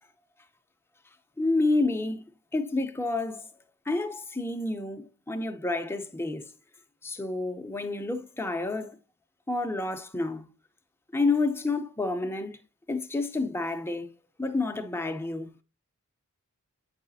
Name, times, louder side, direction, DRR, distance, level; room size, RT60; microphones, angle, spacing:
voice 1, 1.4-2.2 2.5-3.5 3.9-6.5 7.0-9.0 9.5-10.5 11.1-12.6 12.9-14.1 14.4-15.5, left 2 dB, 10° left, 0.6 m, -29 dB
8.4 x 4.8 x 2.7 m
head